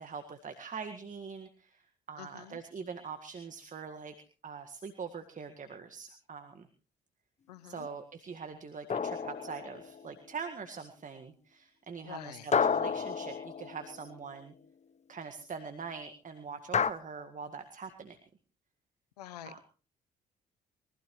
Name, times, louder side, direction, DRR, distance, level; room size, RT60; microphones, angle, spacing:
voice 1, 0.0-4.1 4.4-6.7 7.6-14.5 15.1-18.2 19.4-19.6, right 5 dB, 40° right, 8 dB, 1.9 m, -43 dB
voice 2, 2.2-2.6 7.5-7.9 12.0-12.5 19.2-19.6, left 12 dB, 90° left, 14 dB, 0.9 m, -47 dB
sound 1, 8.9-10.1 12.5-14.2 16.7-16.9, left 6 dB, 35° left, 1.0 m, -31 dB
23.0 x 15.5 x 3.2 m, 0.36 s
hypercardioid pair, 50°, 20 cm